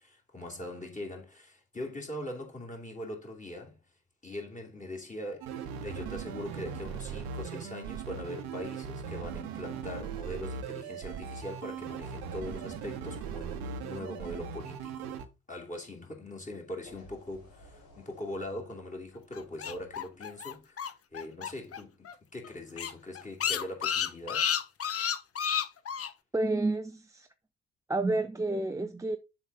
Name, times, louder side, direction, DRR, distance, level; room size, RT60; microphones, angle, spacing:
voice 1, 0.0-3.8 4.2-15.2 15.5-24.5, left 1 dB, 20° left, 2.6 m, -41 dB
sound 1, 5.4-15.3, right 7 dB, 70° right, 1.0 m, -39 dB
sound 2, 10.2-10.3 10.8-14.3 16.7-20.8 21.8-22.0, left 1 dB, 60° left, 3.8 m, -58 dB
sound 3, 19.3-21.8 22.1-22.2 22.4-22.5 22.8-26.1, left 8 dB, 35° left, 0.8 m, -31 dB
voice 2, 26.3-27.3 27.9-29.2, right 2 dB, 10° right, 0.5 m, -30 dB
7.2 x 3.9 x 4.8 m
figure-of-eight pair, 45°, 38 cm